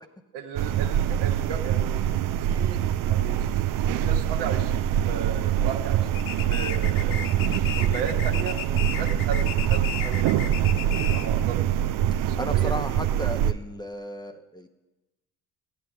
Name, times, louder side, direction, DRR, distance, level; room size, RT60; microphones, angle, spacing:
voice 1, 0.3-2.1 2.4-3.7 4.0-7.2 7.8-8.6 8.9-11.6 12.3-12.8, right 6 dB, 60° right, 4 dB, 1.2 m, -35 dB
sound 1, 0.6-13.5, right 10 dB, 45° right, 0.6 m, -24 dB
sound 2, 6.1-11.4, left 8 dB, 50° left, 0.7 m, -35 dB
voice 2, 12.1-14.7, equal, 10° left, 7 dB, 0.8 m, -35 dB
16.5 x 9.7 x 2.3 m, 1.1 s
hypercardioid pair, 50°, 46 cm